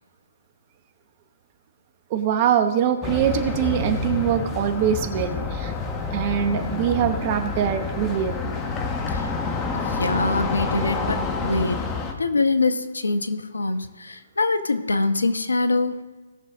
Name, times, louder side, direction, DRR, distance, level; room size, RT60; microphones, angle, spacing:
voice 1, 2.1-5.7 6.1-8.5, right 9 dB, 35° right, 9 dB, 1.0 m, -23 dB
sound 1, 3.0-12.1, left 4 dB, 20° left, 1.3 m, -28 dB
voice 2, 9.7-11.8 12.2-16.0, left 3 dB, 80° left, 9 dB, 1.0 m, -24 dB
17.5 x 6.8 x 3.7 m, 1.3 s
figure-of-eight pair, 135°, 0 cm